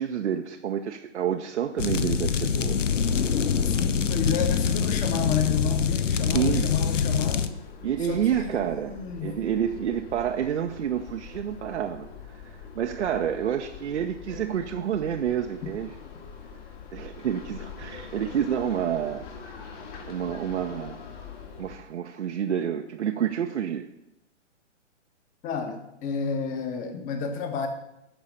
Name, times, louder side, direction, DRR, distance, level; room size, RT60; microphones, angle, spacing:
voice 1, 0.0-2.8 6.3-6.7 7.8-15.9 16.9-19.3 20.1-21.0 21.6-23.9, right 9 dB, 65° right, 3 dB, 0.9 m, -29 dB
sound 1, 1.8-7.5, left 6 dB, 80° left, 0.8 m, -25 dB
voice 2, 3.6-7.5 8.0-9.4 15.6-15.7 25.4-27.7, left 6 dB, 20° left, 6 dB, 1.2 m, -31 dB
sound 2, 6.9-21.8, left 6 dB, 40° left, 1.9 m, -43 dB
11.5 x 4.8 x 6.6 m, 0.83 s
hypercardioid pair, 130°, 37 cm